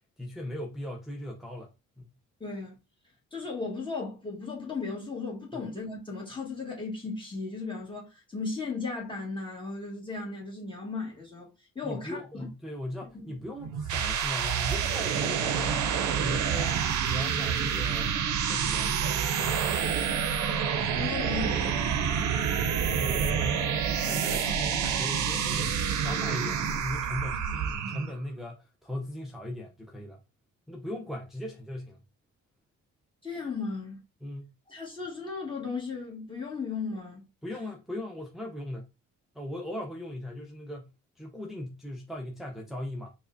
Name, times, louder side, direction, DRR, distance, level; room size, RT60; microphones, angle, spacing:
voice 1, 0.0-2.0 5.5-5.7 11.8-15.9 16.2-18.2 18.5-19.0 19.3-19.8 22.9-30.2 30.7-32.0 34.2-34.5 37.4-38.9 39.3-43.1, left 1 dB, ahead, 0.6 m, -38 dB
voice 2, 2.4-2.8 3.3-12.5 13.1-13.3 20.9-22.1 33.2-34.0 34.7-37.2, left 4 dB, 15° left, 1.3 m, -36 dB
sound 1, 13.6-28.2, right 7 dB, 70° right, 0.6 m, -28 dB
4.7 x 2.1 x 2.6 m
cardioid pair, 90°, 30 cm